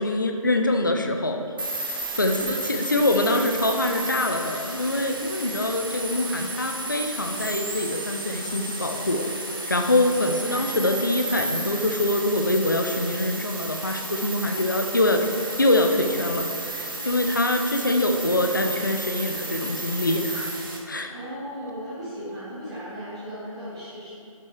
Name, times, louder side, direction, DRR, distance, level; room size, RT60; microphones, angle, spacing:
voice 1, 0.0-1.4 2.1-9.2 9.7-15.3 15.6-20.5 20.9-21.1, left 2 dB, 35° left, 4 dB, 0.5 m, -24 dB
sound 1, 1.6-20.8, right 2 dB, 40° right, 1.1 m, -33 dB
voice 2, 2.3-2.6 10.3-10.6 21.1-24.1, equal, 10° right, -14 dB, 1.8 m, -36 dB
11.5 x 5.7 x 3.2 m, 2.8 s
figure-of-eight pair, 180°, 18 cm